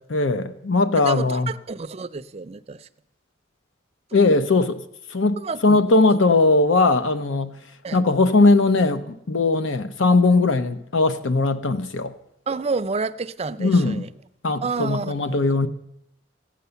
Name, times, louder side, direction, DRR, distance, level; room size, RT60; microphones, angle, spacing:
voice 1, 0.1-1.5 4.1-4.8 5.1-7.6 7.9-12.1 13.6-14.1 14.4-15.7, left 3 dB, 80° left, 0.8 m, -19 dB
voice 2, 1.0-2.9 4.2-4.3 5.4-5.8 7.8-8.0 12.5-14.1 14.6-15.4, right 4 dB, 30° right, 0.4 m, -29 dB
15.0 x 9.2 x 6.9 m
head